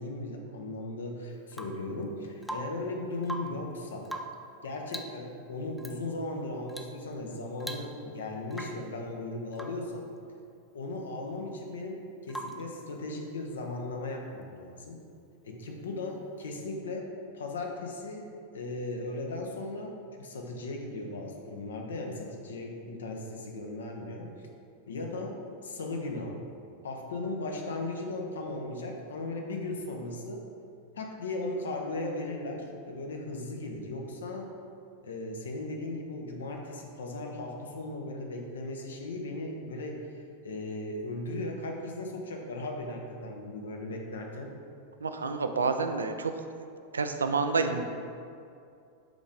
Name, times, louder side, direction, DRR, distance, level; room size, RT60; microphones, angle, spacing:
voice 1, 0.0-4.1 4.6-10.1 10.7-15.0 15.4-18.3 18.5-24.3 24.9-26.4 26.8-30.5 30.9-34.5 35.0-44.5, left 2 dB, 65° left, 1 dB, 0.7 m, -37 dB
Rain / Water tap faucet / Drip, 1.5-1.9 2.4-2.9 3.2-3.7 4.0-4.5 4.9-5.2 5.8-6.0 6.7-7.0 7.3-7.4 7.6-8.2 8.5-8.9 9.5-9.9 12.3-12.7 14.6-14.7, right 1 dB, ahead, 0.4 m, -41 dB
voice 2, 45.0-46.3 46.9-47.8, right 4 dB, 70° right, 7 dB, 0.4 m, -28 dB
5.2 x 3.7 x 4.9 m, 2.5 s
figure-of-eight pair, 90°, 0 cm